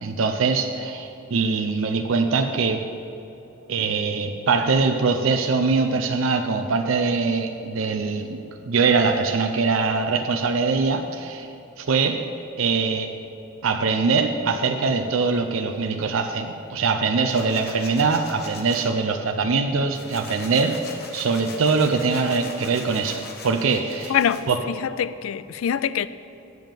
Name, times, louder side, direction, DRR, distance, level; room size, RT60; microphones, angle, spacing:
voice 1, 0.0-2.8 3.7-11.5 11.8-12.3 12.6-13.1 13.6-24.2 24.5-24.6, right 4 dB, 70° right, 5 dB, 0.5 m, -23 dB
sound 1, 17.3-18.9 19.4-24.4, left 4 dB, 50° left, 1.0 m, -41 dB
voice 2, 24.1-26.1, left 8 dB, 75° left, 15 dB, 0.3 m, -24 dB
9.2 x 5.3 x 7.4 m, 2.9 s
head